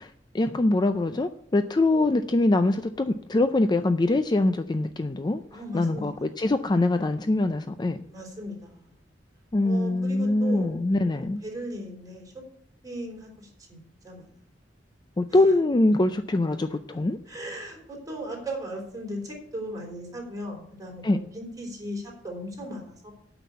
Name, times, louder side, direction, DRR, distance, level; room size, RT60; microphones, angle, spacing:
voice 1, 0.0-5.4 5.7-8.0 9.5-11.4 15.2-17.2 21.0-21.2, left 2 dB, 25° left, 10 dB, 0.4 m, -23 dB
voice 2, 5.5-6.3 8.1-9.0 9.6-12.3 12.8-14.3 15.3-15.5 17.3-23.1, equal, 20° right, -1 dB, 3.5 m, -37 dB
9.1 x 6.0 x 8.4 m, 0.68 s
head